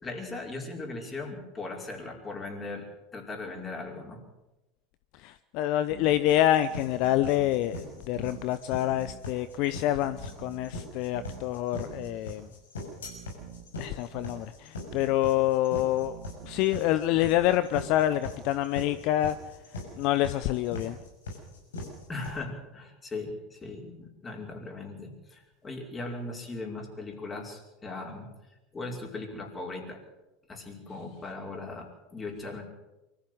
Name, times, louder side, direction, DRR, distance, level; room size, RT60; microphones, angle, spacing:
voice 1, 0.0-2.9 3.1-4.2 22.1-28.3 28.7-30.0 30.5-32.6, left 3 dB, 25° left, 2 dB, 5.4 m, -38 dB
voice 2, 5.2-12.5 13.8-16.2 16.4-19.4 20.0-21.0, left 13 dB, 55° left, 13 dB, 0.7 m, -27 dB
sound 1, 5.9-6.2 7.0-7.7 8.1-8.5 8.9-9.2 10.0-10.7 11.1-11.5 11.9-12.2 13.0-13.7 14.1-14.5 14.9-15.2 16.0-16.7 17.1-17.5, right 10 dB, 65° right, 1.7 m, -46 dB
sound 2, 6.3-22.3, left 2 dB, 80° left, 6.6 m, -40 dB
24.0 x 14.5 x 8.0 m, 1.0 s
hypercardioid pair, 85°, 0 cm